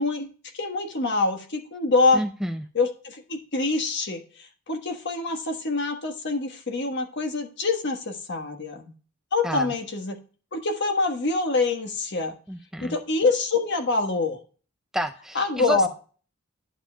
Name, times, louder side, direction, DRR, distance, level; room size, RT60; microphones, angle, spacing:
voice 1, 0.0-2.2 2.7-8.9 9.3-10.2 10.5-12.3 12.8-14.4 15.3-15.9, left 3 dB, 60° left, 5 dB, 1.4 m, -25 dB
voice 2, 2.1-2.6 9.4-9.7 12.5-13.0 14.9-15.9, equal, ahead, 7 dB, 0.4 m, -29 dB
11.0 x 6.9 x 2.2 m, 0.39 s
head